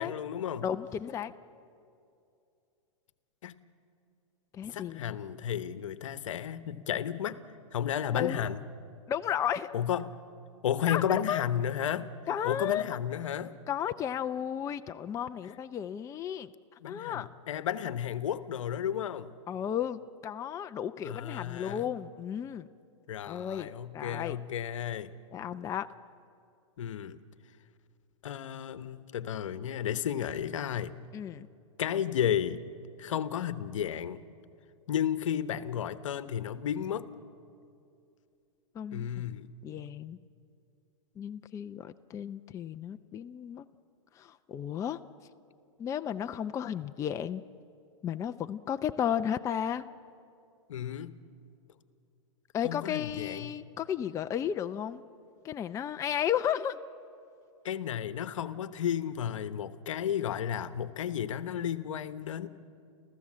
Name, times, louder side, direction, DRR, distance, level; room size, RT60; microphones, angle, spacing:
voice 1, 0.0-0.7 3.4-3.6 4.7-7.4 7.7-8.6 9.7-10.1 10.6-12.1 12.4-13.5 16.8-19.3 21.0-21.9 23.1-25.1 26.8-27.2 28.2-30.9 31.8-32.6 33.0-34.2 34.9-37.1 38.9-39.5 50.7-51.1 52.6-53.5 57.6-62.5, left 9 dB, 75° left, 13 dB, 1.0 m, -33 dB
voice 2, 0.6-1.3 4.5-5.2 8.1-8.4 9.1-9.7 10.9-11.0 11.3-11.4 12.3-12.8 13.7-16.5 16.9-17.3 19.5-22.7 23.3-23.7 23.9-24.4 25.3-25.9 31.1-31.5 38.8-39.1 39.6-40.2 41.2-43.6 44.2-45.0 45.8-47.4 48.0-49.8 52.5-55.0 55.4-56.8, left 9 dB, 20° left, 10 dB, 0.5 m, -33 dB
29.5 x 15.0 x 7.5 m, 2.5 s
hypercardioid pair, 125°, 17 cm